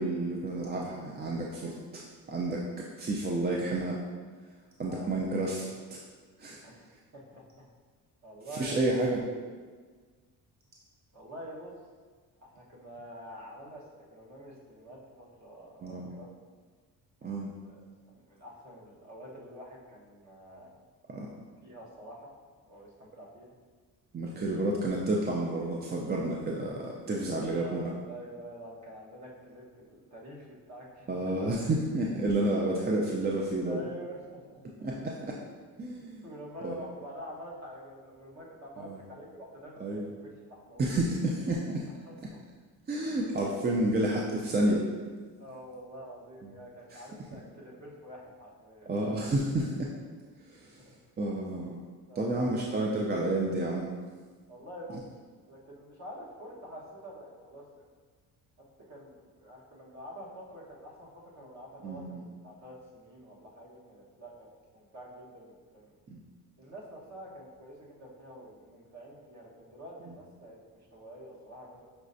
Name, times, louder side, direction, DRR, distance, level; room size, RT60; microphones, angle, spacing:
voice 1, 0.0-2.6 3.0-4.0 4.8-5.6 5.9-6.0 6.4-6.6 8.6-9.2 15.8-16.1 17.2-17.5 21.1-21.3 24.1-27.9 31.1-33.8 34.8-35.3 35.8-36.2 36.6-36.7 38.8-39.0 39.8-40.1 40.8-41.8 42.9-44.8 48.9-49.9 50.5-50.8 51.2-51.8 52.2-53.9 61.8-62.2 66.1-66.2, right 2 dB, 25° right, -2 dB, 0.5 m, -30 dB
voice 2, 4.9-5.8 6.6-7.7 8.2-9.6 11.1-11.7 12.4-16.3 17.2-17.4 17.6-20.8 21.6-22.3 22.6-23.5 27.2-31.5 33.6-34.6 36.0-40.9 42.0-42.4 43.8-44.2 45.4-48.9 50.8-50.9 52.1-52.9 54.5-55.1 55.4-57.9 58.6-65.9 66.6-71.9, equal, 45° right, -4 dB, 1.3 m, -47 dB
6.0 x 3.3 x 2.6 m, 1.5 s
cardioid pair, 90°, 38 cm